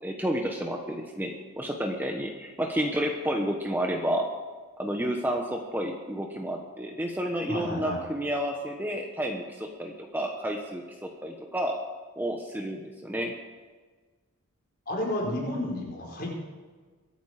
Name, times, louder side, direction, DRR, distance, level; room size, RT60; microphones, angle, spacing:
voice 1, 0.0-4.4 4.8-11.8 12.2-13.3, equal, 10° right, 2 dB, 1.0 m, -30 dB
voice 2, 7.5-8.0 14.9-16.4, left 1 dB, 45° left, -2 dB, 4.5 m, -31 dB
23.0 x 9.1 x 5.0 m, 1.4 s
head